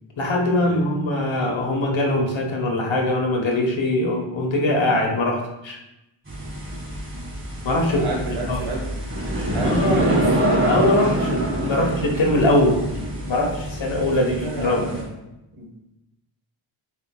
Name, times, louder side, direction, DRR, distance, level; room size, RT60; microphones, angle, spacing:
voice 1, 0.2-5.8 7.6-8.0 8.5-8.6 9.6-10.1 10.7-14.9, left 1 dB, 70° left, 1 dB, 1.4 m, -22 dB
sound 1, 6.3-15.0, right 1 dB, 25° right, 2.0 m, -26 dB
voice 2, 7.9-8.9 9.5-10.3 11.6-12.0 14.0-15.2 15.6-15.8, right 3 dB, 85° right, -1 dB, 1.7 m, -31 dB
10.5 x 4.7 x 2.4 m, 0.91 s
wide cardioid pair, 75°, 48 cm